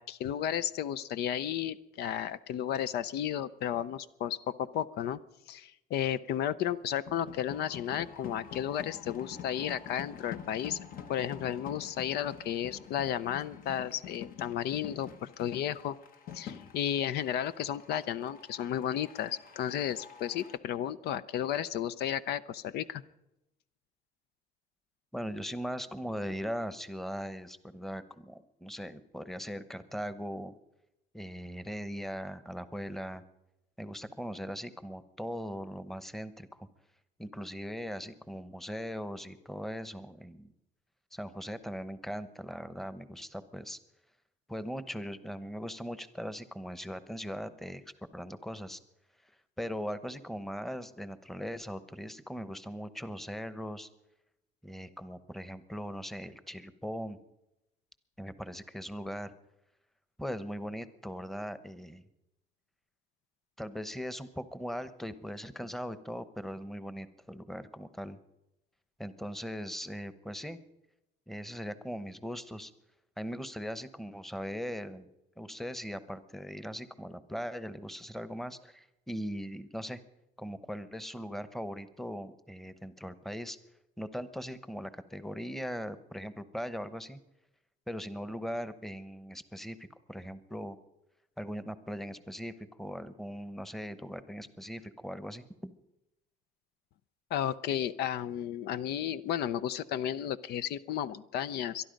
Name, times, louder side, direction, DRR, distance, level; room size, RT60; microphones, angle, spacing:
voice 1, 0.0-5.2 5.5-10.8 11.1-16.0 16.3-23.0 97.3-101.8, left 10 dB, 75° left, 15 dB, 0.6 m, -33 dB
sound 1, 7.1-20.6, left 8 dB, 60° left, 1.3 m, -47 dB
voice 2, 25.1-30.5 31.1-33.2 33.8-36.7 37.2-40.5 41.1-43.8 44.5-47.8 48.1-48.8 49.6-53.9 54.6-57.2 58.2-59.3 60.2-62.0 63.6-68.2 69.0-70.6 71.3-72.7 73.2-75.1 75.4-80.0 80.4-83.6 84.0-87.2 87.9-90.8 91.4-95.7, equal, ahead, 13 dB, 0.9 m, -40 dB
23.0 x 11.5 x 5.2 m, 0.89 s
cardioid pair, 110°, 17 cm